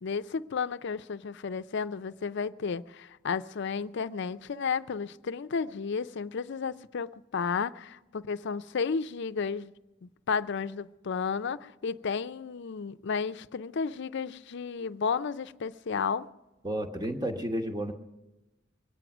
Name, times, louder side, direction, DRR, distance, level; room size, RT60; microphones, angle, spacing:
voice 1, 0.0-9.7 10.0-16.3, left 5 dB, 60° left, 0.5 m, -32 dB
voice 2, 16.6-17.9, right 1 dB, 20° right, 1.1 m, -31 dB
23.0 x 9.2 x 6.0 m
head